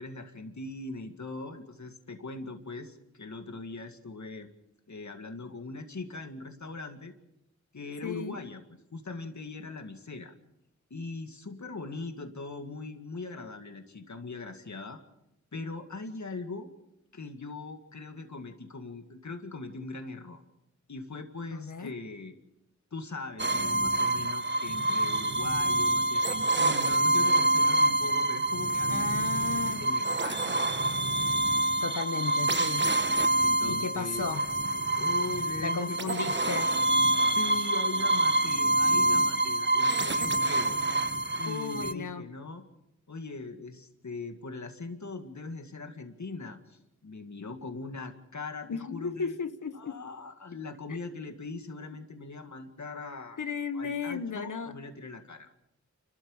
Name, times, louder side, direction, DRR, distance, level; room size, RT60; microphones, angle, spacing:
voice 1, 0.0-4.5 4.9-7.1 7.7-8.6 8.9-10.3 10.9-15.0 15.5-16.7 17.1-20.4 20.9-22.4 22.9-29.1 29.8-30.9 33.4-34.2 34.9-36.1 37.1-40.8 41.4-42.6 43.1-49.4 49.7-53.4 53.7-55.5, left 3 dB, 70° left, 2.1 m, -40 dB
voice 2, 8.0-8.4 21.5-21.9 28.9-30.0 31.8-32.9 33.6-34.4 35.6-36.7 41.5-42.2 48.7-50.0 50.9-51.0 53.4-54.7, left 5 dB, 85° left, 1.3 m, -35 dB
sound 1, 23.4-41.9, right 2 dB, 35° right, 1.2 m, -26 dB
29.0 x 13.5 x 7.2 m
cardioid pair, 45°, 30 cm